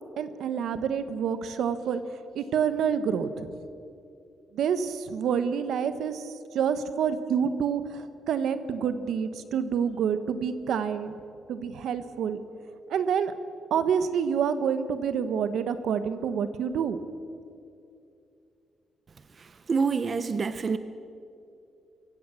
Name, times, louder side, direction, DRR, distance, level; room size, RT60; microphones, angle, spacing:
voice 1, 0.2-2.0 2.3-3.5 4.5-11.2 11.5-12.4 12.9-13.3 13.7-17.0, right 7 dB, 75° right, 11 dB, 1.2 m, -28 dB
voice 2, 19.4-20.8, right 5 dB, 35° right, 12 dB, 0.7 m, -27 dB
24.5 x 16.0 x 7.1 m, 2.6 s
cardioid pair, 145°, 0 cm